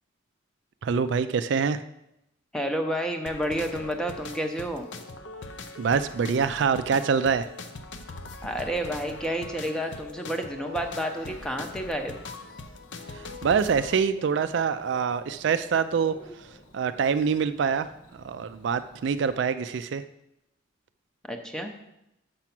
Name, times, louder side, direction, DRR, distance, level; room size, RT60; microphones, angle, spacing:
voice 1, 0.8-1.8 5.8-7.5 13.1-16.5 16.7-20.0, right 6 dB, 60° right, 11 dB, 0.3 m, -25 dB
voice 2, 2.5-4.9 8.4-12.2 21.2-21.7, equal, 5° left, 4 dB, 0.7 m, -30 dB
sound 1, 3.3-13.9, left 2 dB, 60° left, 0.7 m, -41 dB
Bird / Cricket, 10.7-19.4, left 1 dB, 90° left, 1.1 m, -51 dB
6.8 x 6.0 x 5.9 m, 0.84 s
head